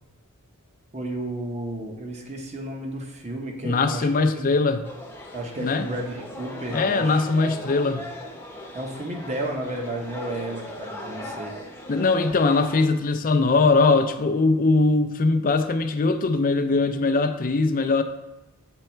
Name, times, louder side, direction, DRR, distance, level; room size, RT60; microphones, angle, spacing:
voice 1, 0.9-4.5 5.3-7.2 8.7-11.6, right 1 dB, 30° right, 1 dB, 0.9 m, -32 dB
voice 2, 3.6-4.8 5.6-5.8 6.7-8.1 11.9-18.0, left 3 dB, 40° left, 7 dB, 0.5 m, -21 dB
sound 1, 4.8-12.8, equal, 10° left, 0.8 m, -38 dB
7.8 x 3.4 x 4.4 m, 0.98 s
head